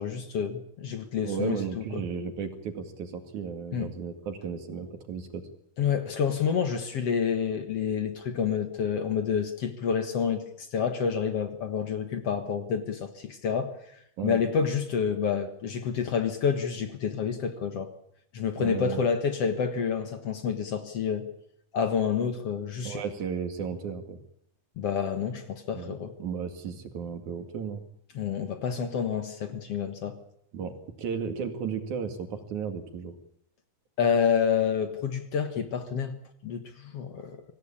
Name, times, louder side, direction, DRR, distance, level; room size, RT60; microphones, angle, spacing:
voice 1, 0.0-2.0 3.7-3.9 5.8-10.4 10.7-13.7 14.2-17.9 18.3-21.3 21.7-23.0 24.8-26.1 28.2-30.2 34.0-36.2 36.4-37.4, left 7 dB, 55° left, 1.8 m, -28 dB
voice 2, 1.2-5.4 14.2-14.4 18.6-19.0 22.8-24.2 25.7-25.9 26.2-27.8 30.5-30.7 31.0-33.1, right 6 dB, 55° right, 3.3 m, -34 dB
24.5 x 16.5 x 8.8 m
omnidirectional pair, 4.5 m